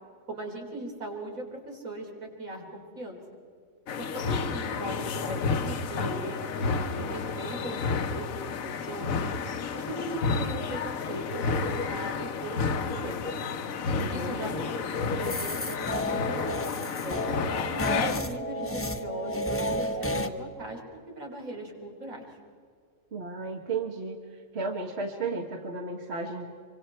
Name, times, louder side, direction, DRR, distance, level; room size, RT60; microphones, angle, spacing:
voice 1, 0.3-3.2 4.0-8.6 8.9-9.2 9.7-13.3 14.1-14.5 14.9-17.2 17.7-22.3, right 1 dB, 80° right, 0 dB, 4.1 m, -39 dB
sound 1, 3.9-18.2, left 5 dB, 80° left, 1.3 m, -31 dB
voice 2, 13.9-14.7 23.1-24.2 24.5-26.5, right 3 dB, 50° right, 3 dB, 1.7 m, -34 dB
sound 2, 15.2-20.3, left 1 dB, 10° left, 0.8 m, -32 dB
25.5 x 25.0 x 4.5 m, 2.1 s
omnidirectional pair, 1.4 m